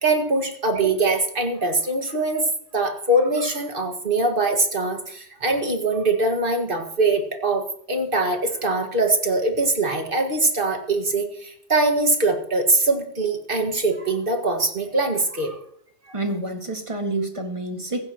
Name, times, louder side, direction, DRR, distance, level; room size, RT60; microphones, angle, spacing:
voice 1, 0.0-2.5 2.7-15.6 16.1-16.2, right 2 dB, 50° right, 4 dB, 2.0 m, -22 dB
voice 2, 16.1-18.1, right 2 dB, 25° right, 3 dB, 2.0 m, -28 dB
16.0 x 15.5 x 3.0 m, 0.67 s
omnidirectional pair, 1.2 m